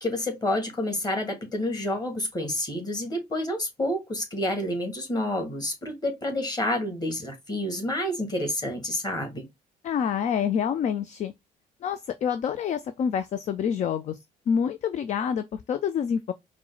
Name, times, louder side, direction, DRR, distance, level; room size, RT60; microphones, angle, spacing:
voice 1, 0.0-9.5, left 1 dB, 20° left, 1.8 m, -29 dB
voice 2, 9.8-11.3 11.8-14.2 14.5-16.3, left 7 dB, 35° left, 0.4 m, -27 dB
4.5 x 2.1 x 3.9 m
figure-of-eight pair, 50°, 21 cm